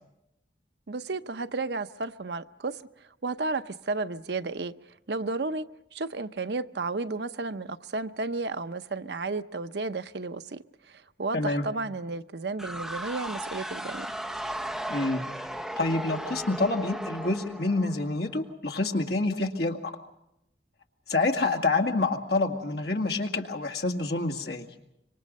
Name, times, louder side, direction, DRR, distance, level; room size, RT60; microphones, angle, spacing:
voice 1, 0.9-2.8 3.2-4.7 5.1-5.6 5.9-14.1, right 3 dB, 75° right, 0.7 m, -33 dB
voice 2, 11.3-11.6 14.9-15.2 15.8-19.9 21.1-24.7, left 2 dB, 65° left, 2.1 m, -27 dB
sound 1, 12.6-18.3, right 1 dB, ahead, 0.9 m, -36 dB
26.5 x 24.0 x 5.4 m
head